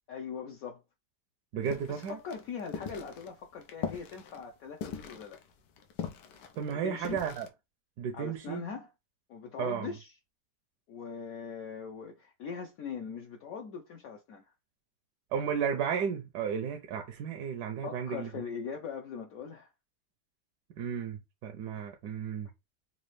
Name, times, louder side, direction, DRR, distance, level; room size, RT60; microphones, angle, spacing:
voice 1, 0.1-0.8 1.9-5.4 6.7-7.3 8.1-8.9 9.3-10.2 10.9-14.4 17.8-19.7 22.0-22.1, left 6 dB, 65° left, 0.9 m, -41 dB
voice 2, 1.5-2.2 6.6-7.5 8.0-8.6 9.6-9.9 15.3-18.3 20.8-22.5, right 7 dB, 80° right, 1.2 m, -33 dB
sound 1, 1.6-7.5, left 7 dB, 85° left, 1.3 m, -41 dB
4.1 x 2.4 x 3.1 m
omnidirectional pair, 1.8 m